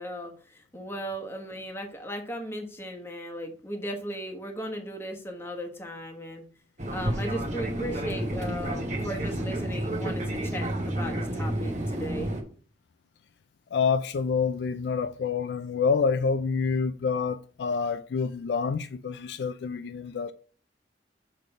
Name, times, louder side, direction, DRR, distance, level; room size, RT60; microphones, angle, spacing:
voice 1, 0.0-6.4 6.9-12.3, equal, 15° left, 1.1 m, -37 dB
Fixed-wing aircraft airplane, 6.8-12.4, right 1 dB, 40° right, 1.2 m, -30 dB
voice 2, 13.7-20.3, left 5 dB, 65° left, 0.4 m, -27 dB
6.3 x 3.3 x 5.3 m
head